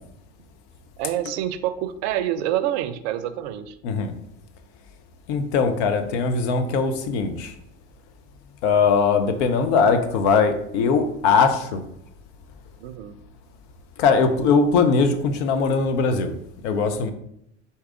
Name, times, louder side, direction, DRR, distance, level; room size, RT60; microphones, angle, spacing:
voice 1, 1.0-3.8 12.8-13.2, right 12 dB, 65° right, 12 dB, 0.5 m, -27 dB
voice 2, 5.3-7.5 8.6-11.8 14.0-16.3 16.6-17.1, left 5 dB, 65° left, 8 dB, 0.7 m, -20 dB
4.5 x 2.8 x 3.6 m, 0.73 s
hypercardioid pair, 70°, 36 cm